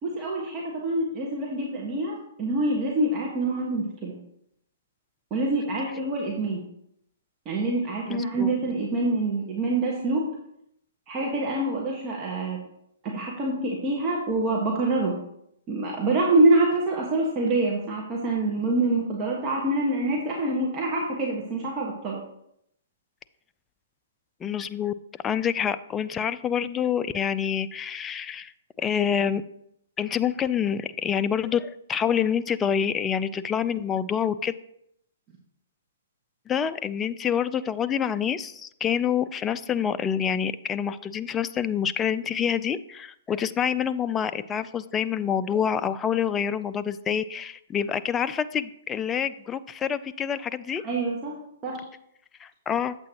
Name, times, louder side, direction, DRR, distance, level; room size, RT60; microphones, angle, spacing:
voice 1, 0.0-4.2 5.3-6.6 7.4-10.3 11.1-12.6 13.0-15.2 15.7-22.2 50.8-51.4 51.6-51.8, right 2 dB, 25° right, -2 dB, 1.4 m, -26 dB
voice 2, 8.1-8.5 24.4-24.9 25.2-28.5 28.8-29.4 30.0-34.5 36.5-50.8 52.4-53.0, left 8 dB, 15° left, 13 dB, 0.4 m, -27 dB
8.4 x 7.8 x 2.9 m, 0.75 s
hypercardioid pair, 140°, 0 cm